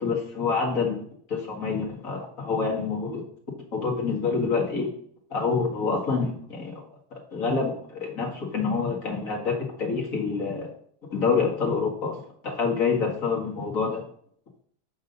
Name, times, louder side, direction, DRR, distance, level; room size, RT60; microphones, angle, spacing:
voice 1, 0.0-3.2 3.7-4.9 5.3-6.8 7.1-10.7 11.1-14.0, left 4 dB, 50° left, -1 dB, 2.3 m, -27 dB
7.8 x 4.9 x 5.4 m, 0.62 s
omnidirectional pair, 1.8 m